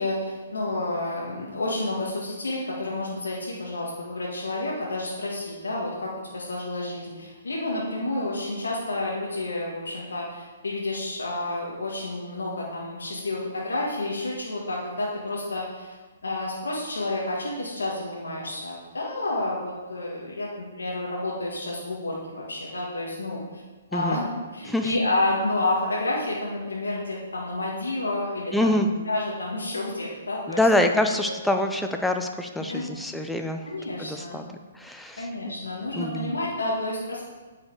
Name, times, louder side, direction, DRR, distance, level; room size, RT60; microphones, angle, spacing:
voice 1, 0.0-16.0 16.2-23.4 23.9-24.3 24.5-30.6 31.2-31.3 32.6-32.9 33.6-34.4 35.2-37.2, left 2 dB, 80° left, -4 dB, 1.8 m, -30 dB
voice 2, 28.5-28.9 30.5-33.7 34.0-34.4 34.7-35.3 36.0-36.3, left 1 dB, 5° left, 5 dB, 0.7 m, -25 dB
9.4 x 5.4 x 4.9 m, 1.3 s
hypercardioid pair, 135°, 0 cm